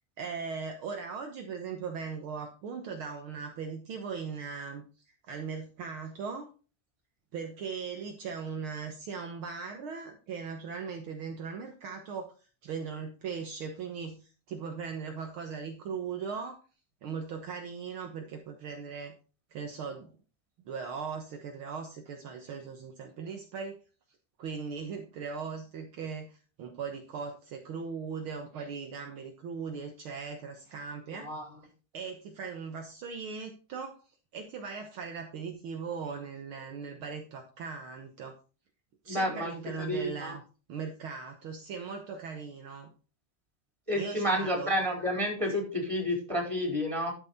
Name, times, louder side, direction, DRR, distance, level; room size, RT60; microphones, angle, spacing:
voice 1, 0.2-4.8 5.3-6.5 7.3-12.3 12.6-16.6 17.0-19.1 19.5-20.1 20.6-23.8 24.4-31.3 31.9-34.0 34.3-38.3 39.0-40.4 40.7-42.9 43.9-44.7, right 5 dB, 65° right, 4 dB, 1.3 m, -39 dB
voice 2, 39.1-39.5 39.8-40.3 43.9-47.1, equal, 10° right, 1 dB, 4.0 m, -30 dB
12.0 x 7.3 x 4.1 m, 0.35 s
omnidirectional pair, 3.9 m